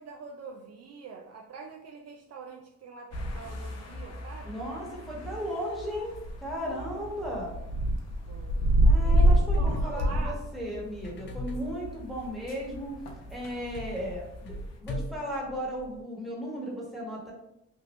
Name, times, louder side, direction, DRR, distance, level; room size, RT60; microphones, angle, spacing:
voice 1, 0.0-4.6 6.6-7.0 8.3-8.6 9.0-10.4, right 4 dB, 55° right, 2 dB, 0.5 m, -45 dB
sound 1, 3.1-14.7, right 1 dB, 60° left, 0.8 m, -28 dB
voice 2, 4.4-7.6 8.8-12.9 13.3-14.5 14.8-17.3, equal, ahead, -4 dB, 1.3 m, -36 dB
sound 2, 9.1-16.0, left 1 dB, 40° left, 0.4 m, -41 dB
3.1 x 2.5 x 3.1 m, 0.83 s
cardioid pair, 90°, 30 cm